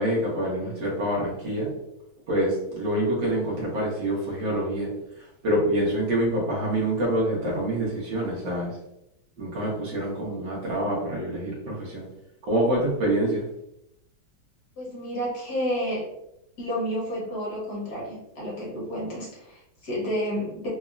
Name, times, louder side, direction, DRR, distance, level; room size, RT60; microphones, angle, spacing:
voice 1, 0.0-1.7 2.3-4.9 5.4-8.7 9.4-12.0 12.5-13.4, right 1 dB, 65° right, -5 dB, 1.9 m, -26 dB
voice 2, 14.8-16.1 16.6-20.7, equal, 55° left, -5 dB, 1.5 m, -30 dB
4.1 x 2.7 x 2.4 m, 0.83 s
omnidirectional pair, 2.2 m